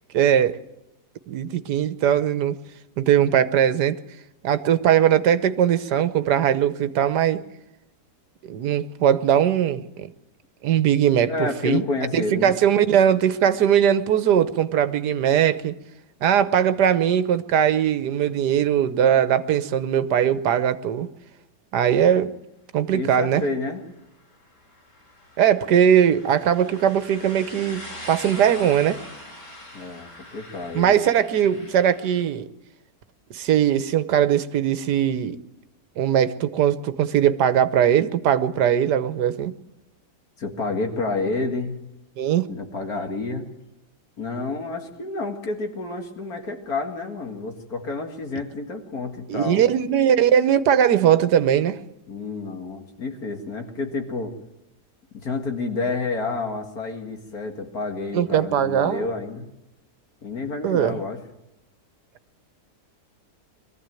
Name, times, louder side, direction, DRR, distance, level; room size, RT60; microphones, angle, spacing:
voice 1, 0.1-0.6 1.3-2.6 3.0-3.9 4.4-7.4 8.5-10.1 10.6-11.9 12.1-15.7 16.2-21.1 21.7-22.3 22.7-23.4 25.4-29.0 30.7-32.5 33.3-35.4 36.0-39.5 42.2-42.5 49.3-51.8 58.1-59.0 60.6-61.0, right 9 dB, 75° right, 13 dB, 1.5 m, -20 dB
voice 2, 11.3-12.6 22.9-23.8 29.7-31.0 40.4-41.8 42.5-43.5 44.2-49.6 52.1-54.3 55.1-59.5 60.2-61.2, left 3 dB, 60° left, 4 dB, 2.4 m, -29 dB
sound 1, 24.1-32.2, left 1 dB, 85° left, 7.0 m, -42 dB
22.5 x 14.5 x 9.1 m, 0.92 s
omnidirectional pair, 1.8 m